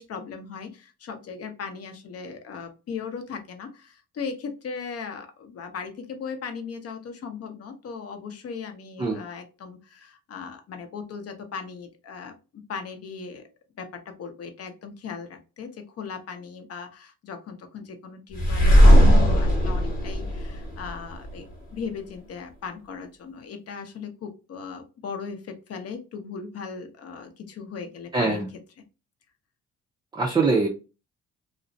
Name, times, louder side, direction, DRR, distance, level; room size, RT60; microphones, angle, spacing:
voice 1, 0.0-13.5 13.8-28.4, left 5 dB, 55° left, 6 dB, 0.6 m, -38 dB
sound 1, 18.3-21.3, equal, 30° left, 1.0 m, -17 dB
voice 2, 28.1-28.5 30.1-30.7, right 3 dB, 15° right, -1 dB, 0.4 m, -22 dB
2.4 x 2.0 x 2.5 m, 0.31 s
cardioid pair, 90°, 30 cm